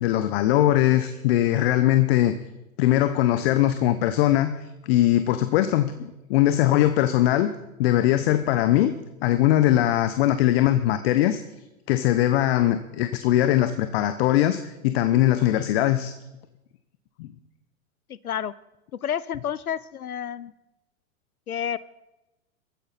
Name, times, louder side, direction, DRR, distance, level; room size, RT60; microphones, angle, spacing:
voice 1, 0.0-2.3 2.8-4.5 4.8-7.5 7.8-8.9 9.2-11.4 11.9-16.1 17.2-17.3, left 13 dB, 45° left, 11 dB, 0.9 m, -21 dB
voice 2, 18.1-18.5 19.0-20.5 21.5-21.8, left 9 dB, 90° left, 18 dB, 0.6 m, -30 dB
22.0 x 14.0 x 4.2 m, 0.97 s
figure-of-eight pair, 105°, 42 cm